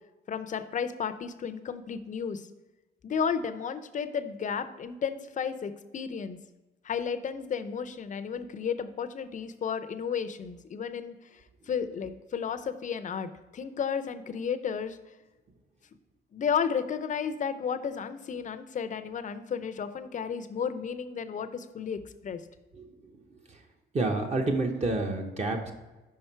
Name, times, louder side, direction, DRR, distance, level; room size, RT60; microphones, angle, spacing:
voice 1, 0.3-2.5 3.0-6.4 6.8-11.4 11.7-15.0 16.3-22.4, left 7 dB, 40° left, 10 dB, 0.5 m, -33 dB
voice 2, 23.9-25.7, right 2 dB, 35° right, 3 dB, 0.8 m, -28 dB
5.6 x 5.2 x 4.4 m, 1.2 s
cardioid pair, 90°, 20 cm